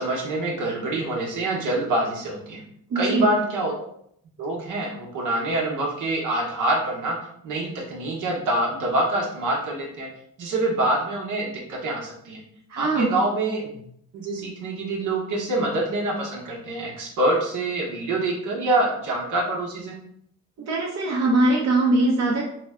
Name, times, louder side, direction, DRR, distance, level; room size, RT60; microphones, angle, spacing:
voice 1, 0.0-2.6 2.9-3.7 4.4-7.2 7.4-10.1 10.4-12.4 12.8-13.8 14.1-19.9, right 2 dB, 80° right, -1 dB, 1.0 m, -25 dB
voice 2, 2.9-3.3 12.7-13.1 20.6-22.5, right 2 dB, 60° right, -3 dB, 0.8 m, -21 dB
3.4 x 2.2 x 3.5 m, 0.69 s
cardioid pair, 90°, 30 cm